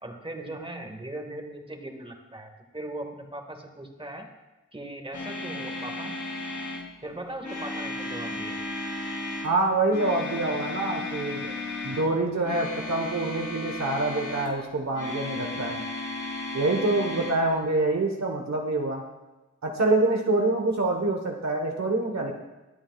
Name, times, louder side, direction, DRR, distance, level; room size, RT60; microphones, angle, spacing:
voice 1, 0.0-4.3 4.7-6.2 7.0-8.6, right 1 dB, 20° right, 3 dB, 1.9 m, -39 dB
sound 1, 5.1-6.9 7.4-9.5 9.9-12.1 12.4-14.5 14.9-17.4, left 2 dB, 75° left, 2.4 m, -34 dB
voice 2, 9.4-11.5 11.8-15.8 16.5-19.0 19.6-22.3, right 2 dB, 65° right, 2 dB, 1.3 m, -26 dB
23.0 x 8.8 x 2.4 m, 1.1 s
cardioid pair, 50°, 29 cm